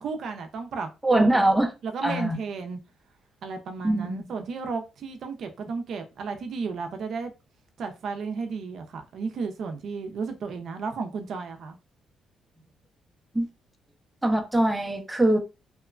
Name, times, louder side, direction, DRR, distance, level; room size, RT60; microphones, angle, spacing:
voice 1, 0.0-1.4 1.8-2.8 3.4-7.3 7.8-11.8, right 5 dB, 65° right, 0.4 m, -33 dB
voice 2, 1.0-1.7 2.0-2.4 3.8-4.3 13.3-13.5 14.2-15.4, right 1 dB, 10° right, 0.5 m, -22 dB
2.9 x 2.1 x 2.3 m
cardioid pair, 90°, 0 cm